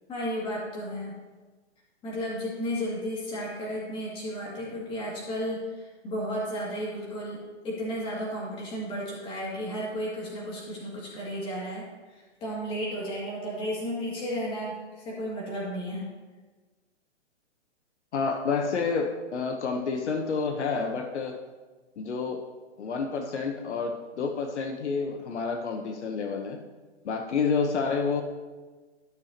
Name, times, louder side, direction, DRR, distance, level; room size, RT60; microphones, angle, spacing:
voice 1, 0.1-1.2 2.0-16.1, equal, 15° left, -5 dB, 2.4 m, -33 dB
voice 2, 18.1-21.4 22.0-22.4 22.8-26.6 27.0-28.2, left 5 dB, 75° left, 4 dB, 1.1 m, -29 dB
13.0 x 6.6 x 2.9 m, 1.3 s
hypercardioid pair, 155°, 34 cm